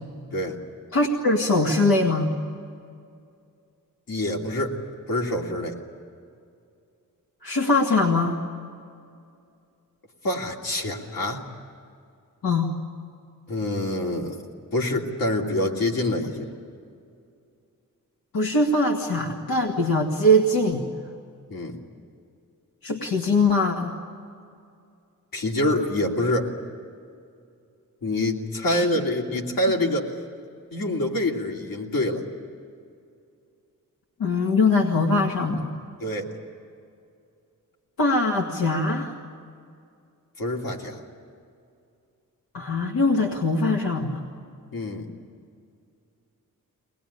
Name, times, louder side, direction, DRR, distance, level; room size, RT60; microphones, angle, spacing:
voice 1, 0.9-2.3 7.4-8.4 12.4-12.7 18.3-20.8 22.8-23.9 28.7-28.8 34.2-35.7 38.0-39.2 42.5-44.2, left 2 dB, 90° left, 0 dB, 2.0 m, -22 dB
voice 2, 4.1-4.8 5.1-5.8 10.2-11.4 13.5-14.4 14.7-16.5 21.5-21.8 25.3-26.5 28.0-30.1 30.7-32.2 36.0-36.3 40.4-41.0 44.7-45.1, left 1 dB, 70° left, 0 dB, 2.9 m, -26 dB
23.5 x 20.0 x 10.0 m, 2.4 s
wide cardioid pair, 145°, 34 cm